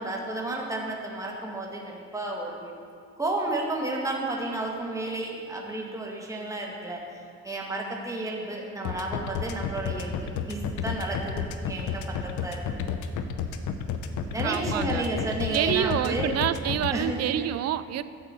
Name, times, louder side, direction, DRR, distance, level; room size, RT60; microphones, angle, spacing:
voice 1, 0.0-2.7 3.2-7.2 7.4-12.6 14.3-16.3 16.6-17.3, right 2 dB, 10° right, -1 dB, 1.4 m, -32 dB
sound 1, 8.8-16.9, left 8 dB, 80° left, 0.7 m, -31 dB
voice 2, 14.4-15.0 15.5-18.0, right 12 dB, 55° right, 14 dB, 0.4 m, -27 dB
9.7 x 7.7 x 4.3 m, 2.3 s
cardioid pair, 90°, 30 cm